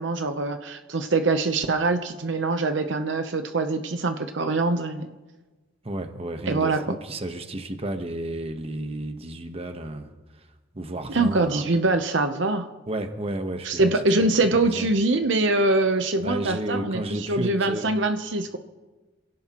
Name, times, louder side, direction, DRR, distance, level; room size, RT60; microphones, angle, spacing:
voice 1, 0.0-5.2 6.5-6.8 11.1-12.7 13.6-18.6, right 2 dB, 70° right, 7 dB, 0.9 m, -24 dB
voice 2, 5.8-10.1 10.3-10.5 10.7-11.6 12.9-13.9 14.2-14.3 14.5-14.9 16.2-17.8, right 1 dB, 30° right, 6 dB, 1.2 m, -32 dB
28.0 x 17.0 x 3.1 m, 1.2 s
head